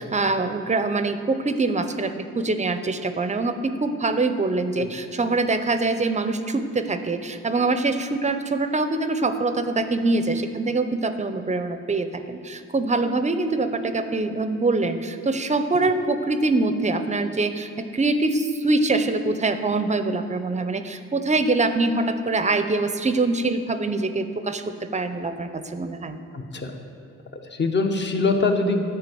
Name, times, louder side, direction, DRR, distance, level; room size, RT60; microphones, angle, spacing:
voice 1, 0.0-26.2, right 3 dB, 25° right, 9 dB, 0.6 m, -24 dB
voice 2, 26.3-26.7 27.5-28.9, left 3 dB, 35° left, 5 dB, 1.1 m, -23 dB
10.5 x 4.8 x 7.7 m, 2.4 s
cardioid pair, 90°, 30 cm